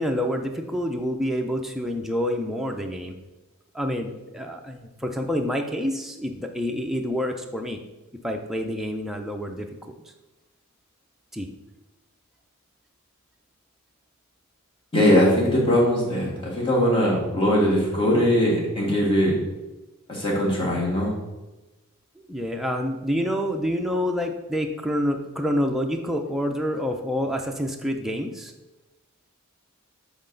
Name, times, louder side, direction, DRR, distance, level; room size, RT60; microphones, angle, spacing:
voice 1, 0.0-3.2 3.7-7.8 8.2-9.7 11.3-11.5 22.2-28.5, equal, ahead, 2 dB, 0.5 m, -27 dB
voice 2, 14.9-16.3 16.5-19.4 20.1-21.1, equal, 25° left, -5 dB, 1.7 m, -20 dB
7.7 x 4.0 x 3.9 m, 1.1 s
head